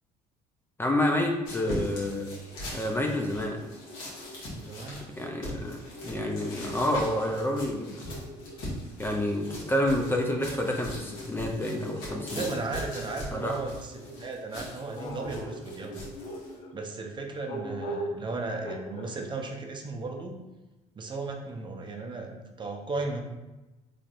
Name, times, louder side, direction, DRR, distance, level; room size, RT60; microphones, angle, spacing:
voice 1, 0.8-2.3 2.7-3.6 5.2-5.8 6.0-8.0 9.0-12.5 13.3-13.6, left 1 dB, 15° left, 1 dB, 0.5 m, -28 dB
sound 1, 1.5-16.6, equal, 70° left, 1.4 m, -41 dB
sound 2, 2.4-4.8 5.6-8.6 9.4-14.2 14.9-16.7 17.5-18.2 18.6-19.1, equal, 45° left, 0.9 m, -42 dB
voice 2, 4.5-5.0 9.6-9.7 12.3-16.0 16.7-20.4 20.9-23.2, right 3 dB, 30° right, 2 dB, 0.6 m, -35 dB
3.9 x 3.3 x 2.5 m, 1.1 s
supercardioid pair, 75°, 15 cm